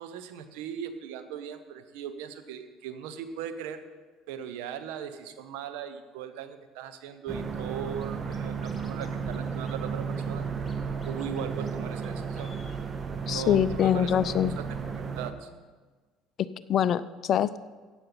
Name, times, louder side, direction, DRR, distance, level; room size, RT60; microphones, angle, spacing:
voice 1, 0.0-3.8 4.3-10.5 11.0-12.5 13.3-15.5, right 8 dB, 65° right, 10 dB, 0.8 m, -39 dB
sound 1, 7.3-15.3, right 5 dB, 35° right, 1.0 m, -33 dB
Scratching (performance technique), 8.0-8.1 8.3-9.1 9.3-9.4 9.6-10.8 11.0-11.4 11.7-11.8 12.0-12.1 12.3-12.8, left 4 dB, 25° left, 1.9 m, -53 dB
voice 2, 13.3-14.5 16.4-17.6, left 10 dB, 50° left, 16 dB, 0.4 m, -25 dB
15.5 x 9.0 x 4.0 m, 1.4 s
figure-of-eight pair, 60°, 0 cm